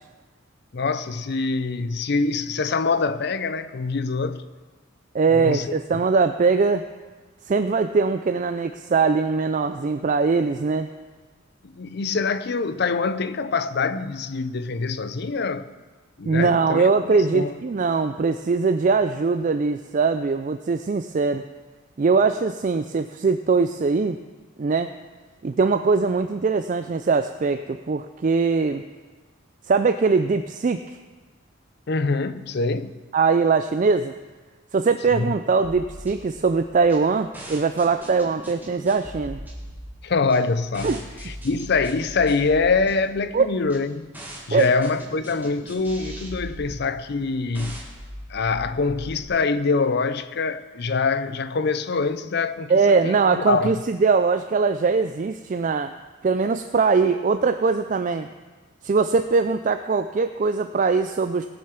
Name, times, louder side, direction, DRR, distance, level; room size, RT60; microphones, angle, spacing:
voice 1, 0.7-4.4 5.3-5.7 11.6-15.7 16.2-17.5 31.9-33.0 35.1-35.3 40.0-44.1 44.5-47.8 48.3-53.7, left 4 dB, 50° left, 0.5 m, -25 dB
voice 2, 5.1-6.8 7.5-10.9 16.3-21.4 22.0-24.2 24.6-24.9 25.4-28.8 29.6-30.8 33.1-34.1 34.7-39.4 40.8-41.0 43.3-43.5 44.5-44.7 52.7-55.9 56.2-58.3 58.8-61.5, right 4 dB, 35° right, 0.3 m, -21 dB
sound 1, 35.6-49.2, equal, 10° right, 1.7 m, -40 dB
18.0 x 6.4 x 5.8 m
head